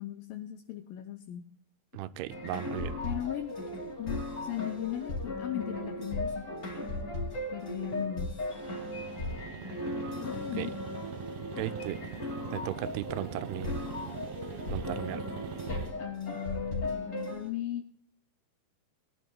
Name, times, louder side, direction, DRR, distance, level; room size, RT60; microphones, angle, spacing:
voice 1, 0.0-1.5 3.0-3.5 4.0-6.5 7.5-8.3 10.2-10.7 16.0-17.8, left 12 dB, 80° left, 6 dB, 2.1 m, -37 dB
voice 2, 1.9-3.0 10.6-10.7 11.6-12.0 12.5-13.7 14.7-15.3, right 14 dB, 90° right, 14 dB, 2.6 m, -36 dB
sound 1, 2.3-17.5, left 2 dB, 25° left, 2.3 m, -37 dB
sound 2, 8.4-15.9, right 8 dB, 75° right, 2.5 m, -43 dB
21.0 x 11.0 x 2.3 m, 0.63 s
omnidirectional pair, 4.5 m